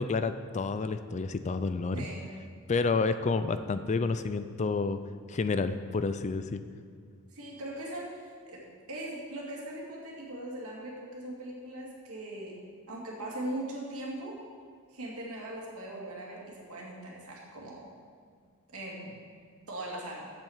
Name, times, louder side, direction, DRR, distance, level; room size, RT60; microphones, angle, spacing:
voice 1, 0.0-2.0 2.7-5.0 5.3-6.6, left 4 dB, 30° left, 11 dB, 0.4 m, -29 dB
voice 2, 1.9-2.3 7.3-12.6 12.9-14.4 14.9-17.9 18.7-19.2 19.7-20.3, right 1 dB, 75° right, -3 dB, 2.4 m, -40 dB
7.7 x 7.5 x 7.3 m, 2.1 s
head